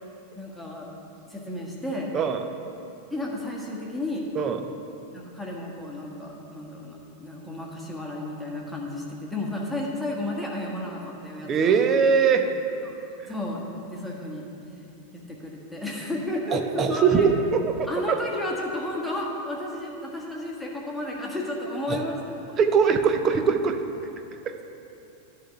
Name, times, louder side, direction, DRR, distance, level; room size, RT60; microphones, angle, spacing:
voice 1, 0.3-0.9 1.3-2.1 3.1-4.3 5.1-11.8 12.8-12.9 13.3-14.4 15.1-17.3 17.9-22.4, left 1 dB, ahead, -3 dB, 1.3 m, -32 dB
voice 2, 11.5-12.5 16.5-18.2 21.9-22.0 22.6-23.8, right 6 dB, 30° right, 6 dB, 0.6 m, -21 dB
11.0 x 3.7 x 6.7 m, 2.7 s
figure-of-eight pair, 90°, 0 cm